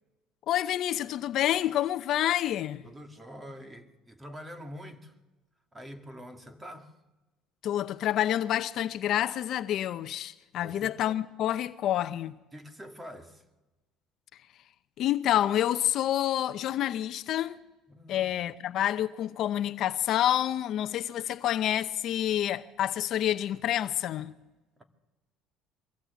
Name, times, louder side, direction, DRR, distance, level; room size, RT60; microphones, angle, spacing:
voice 1, 0.5-2.8 7.6-12.3 15.0-17.6 18.1-24.3, left 12 dB, 55° left, 0.7 m, -28 dB
voice 2, 2.8-5.2 5.7-6.9 10.6-11.0 12.5-13.4 17.9-18.3 24.8-24.9, equal, 15° right, 2.2 m, -45 dB
23.0 x 15.5 x 8.3 m
cardioid pair, 115°, 0 cm